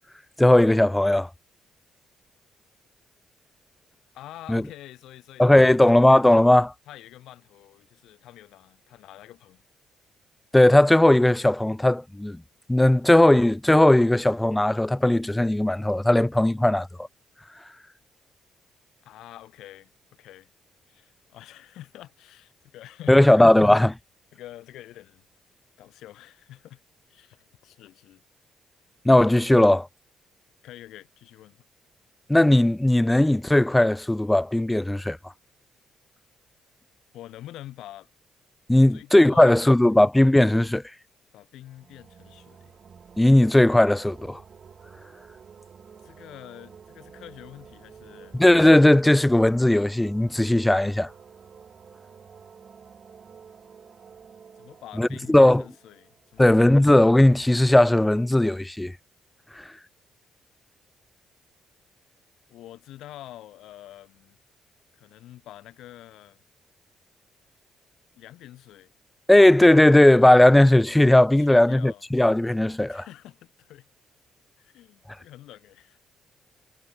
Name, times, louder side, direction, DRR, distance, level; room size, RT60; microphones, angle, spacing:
voice 1, 0.4-1.3 4.5-4.6 5.4-6.7 10.5-12.4 12.7-16.9 23.1-23.9 29.1-29.9 32.3-35.2 38.7-40.8 43.2-44.4 48.3-51.1 55.0-55.6 56.4-58.9 69.3-73.0, left 1 dB, 10° left, 0.5 m, -17 dB
voice 2, 4.1-6.1 6.9-9.6 19.1-19.9 20.2-20.5 20.9-23.4 24.3-25.2 25.8-26.8 27.1-28.2 30.6-31.6 37.1-38.1 38.9-39.8 41.3-42.8 46.0-48.4 54.6-56.6 62.5-64.4 64.9-66.4 68.1-68.9 71.4-72.0 72.9-73.9 74.6-76.0, left 14 dB, 70° left, 3.7 m, -46 dB
sound 1, 41.6-57.2, right 6 dB, 50° right, 2.6 m, -50 dB
hypercardioid pair, 45°, 0 cm